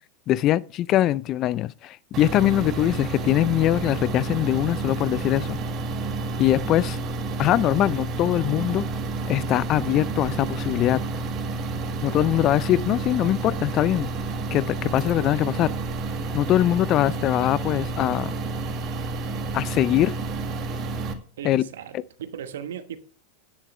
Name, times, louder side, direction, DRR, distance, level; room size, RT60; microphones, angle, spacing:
voice 1, 0.3-5.6 6.4-7.0 7.4-8.8 9.3-11.0 12.0-14.1 14.5-15.7 16.3-18.3 19.5-20.1 21.4-21.6, left 13 dB, 40° left, 0.5 m, -22 dB
sound 1, 2.1-21.1, right 3 dB, 40° right, 1.8 m, -30 dB
voice 2, 21.4-23.0, right 9 dB, 75° right, 1.2 m, -37 dB
11.0 x 9.8 x 3.3 m
hypercardioid pair, 90°, 0 cm